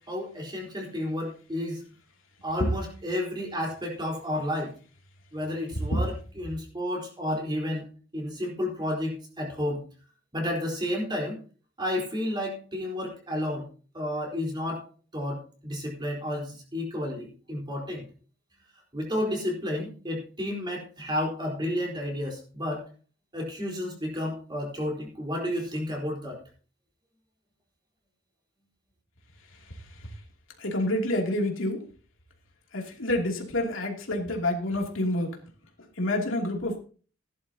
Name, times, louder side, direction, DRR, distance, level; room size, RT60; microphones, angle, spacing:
voice 1, 0.1-1.8 2.4-4.7 5.3-7.9 8.1-9.8 10.3-11.4 11.8-13.7 13.9-14.8 15.1-18.0 18.9-22.8 23.3-26.4, left 1 dB, 25° right, 4.1 m, -31 dB
voice 2, 29.6-30.1 30.6-31.9 32.7-35.4 36.0-36.8, left 1 dB, 85° left, 2.8 m, -28 dB
16.5 x 11.0 x 2.9 m
head